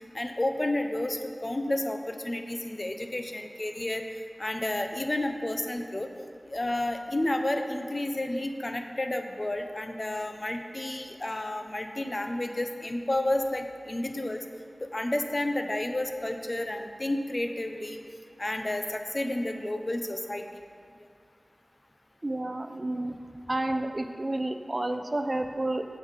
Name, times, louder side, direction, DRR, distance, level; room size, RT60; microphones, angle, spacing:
voice 1, 0.1-4.0 4.4-6.1 6.5-14.4 14.9-18.0 18.4-20.4, left 1 dB, 45° left, 5 dB, 0.7 m, -31 dB
voice 2, 22.2-23.1 23.5-25.9, right 1 dB, 45° right, 7 dB, 0.5 m, -30 dB
15.5 x 5.5 x 4.1 m, 2.2 s
wide cardioid pair, 50°, 0 cm